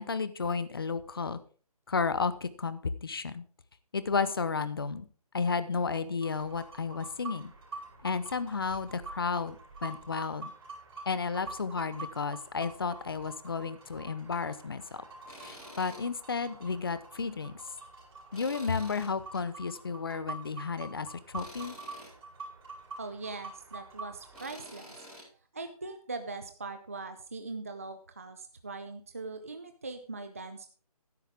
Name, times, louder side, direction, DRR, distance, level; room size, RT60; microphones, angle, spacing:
voice 1, 0.0-1.4 1.9-3.4 3.9-5.1 5.3-7.5 8.0-9.6 9.8-10.5 11.1-15.0 15.4-17.5 18.3-21.8, left 5 dB, 35° left, 14 dB, 0.8 m, -32 dB
sound 1, 6.2-24.5, right 3 dB, 40° right, 6.0 m, -47 dB
Tools, 15.3-16.0 16.4-16.5 18.3-19.4 21.3-22.1 24.3-25.2, equal, 5° left, 5.0 m, -48 dB
voice 2, 23.0-25.0 25.3-30.7, right 3 dB, 25° right, 8 dB, 0.5 m, -41 dB
13.5 x 11.0 x 3.6 m, 0.40 s
hypercardioid pair, 175°, 20 cm